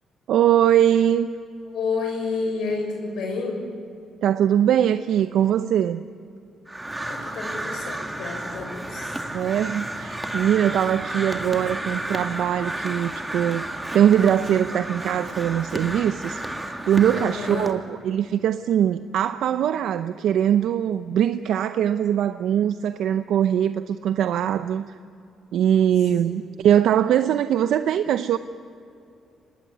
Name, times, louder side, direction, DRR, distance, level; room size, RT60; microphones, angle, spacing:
voice 1, 0.3-1.3 4.2-6.0 9.3-16.4 16.9-24.8 25.5-28.4, right 10 dB, 75° right, 10 dB, 0.7 m, -21 dB
voice 2, 1.7-3.6 7.0-9.2 17.1-17.7 26.2-26.4, left 4 dB, 75° left, 1 dB, 5.9 m, -30 dB
Crow, 6.7-17.7, right 1 dB, 10° right, 2.4 m, -32 dB
24.5 x 19.0 x 9.7 m, 2.5 s
cardioid pair, 90°, 0 cm